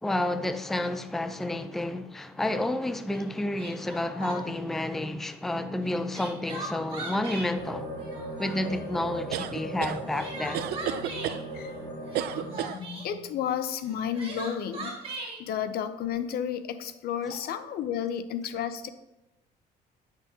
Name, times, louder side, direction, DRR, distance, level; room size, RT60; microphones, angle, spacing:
voice 1, 0.0-7.9 8.4-10.7, left 1 dB, ahead, 0.4 m, -30 dB
Crying sobbing, 3.1-3.2 3.6-4.6 5.8-7.5 8.0-8.8 9.8-11.4 12.0-13.1 13.8-15.4, right 2 dB, 35° right, 2.5 m, -39 dB
sound 1, 7.5-12.6, equal, 30° left, 2.4 m, -38 dB
sound 2, 9.3-10.0 10.5-11.4 12.1-12.8, right 11 dB, 70° right, 0.5 m, -31 dB
voice 2, 12.3-18.9, left 8 dB, 65° left, 0.6 m, -32 dB
9.8 x 6.1 x 2.8 m
cardioid pair, 110°, 17 cm